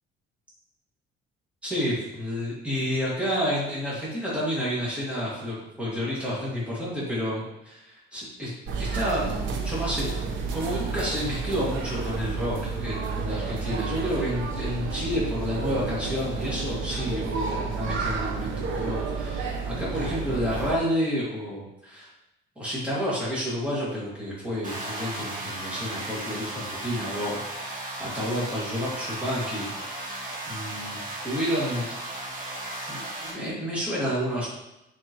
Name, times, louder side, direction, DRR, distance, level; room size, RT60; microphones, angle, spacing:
voice 1, 1.6-8.5 8.9-10.1 10.5-22.1 22.6-30.1 30.5-31.9 32.9-34.5, equal, 5° right, -8 dB, 2.2 m, -30 dB
sound 1, 8.7-20.8, right 4 dB, 65° right, 1.0 m, -31 dB
sound 2, 24.6-33.3, right 1 dB, 40° right, 2.0 m, -35 dB
9.7 x 4.4 x 3.1 m, 0.91 s
cardioid pair, 150°, 21 cm